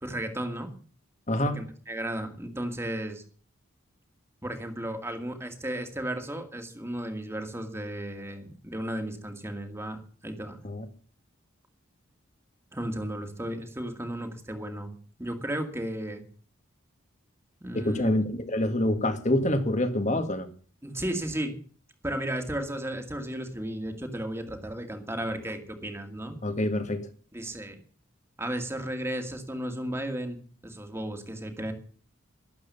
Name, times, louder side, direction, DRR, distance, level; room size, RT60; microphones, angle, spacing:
voice 1, 0.0-0.7 1.5-3.2 4.4-10.6 12.7-14.9 15.2-16.2 17.6-18.1 20.8-21.6 22.0-26.4 27.3-27.8 28.4-30.4 30.6-31.7, right 1 dB, 10° right, 2.2 m, -34 dB
voice 2, 17.7-20.5 26.4-27.1, left 1 dB, 35° left, 1.9 m, -26 dB
13.0 x 12.0 x 7.0 m
head